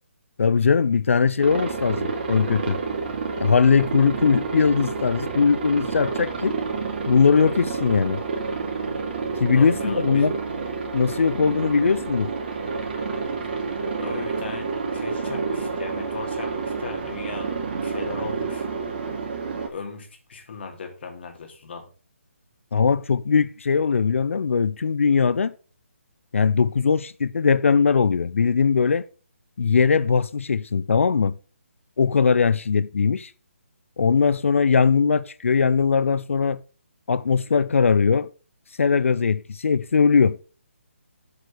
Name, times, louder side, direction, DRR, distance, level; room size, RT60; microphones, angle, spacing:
voice 1, 0.4-2.8 3.4-6.6 7.1-8.2 9.4-10.4 10.9-12.3 22.7-25.5 26.3-29.1 29.6-31.4 32.0-33.3 34.0-36.6 37.1-38.3 38.8-40.4, left 5 dB, 70° left, 0.5 m, -20 dB
Aircraft, 1.4-19.7, right 4 dB, 45° right, 2.4 m, -29 dB
voice 2, 9.5-10.3 14.0-18.7 19.7-21.9, left 5 dB, 50° left, 2.7 m, -37 dB
7.9 x 5.3 x 6.4 m
hypercardioid pair, 160°, 7 cm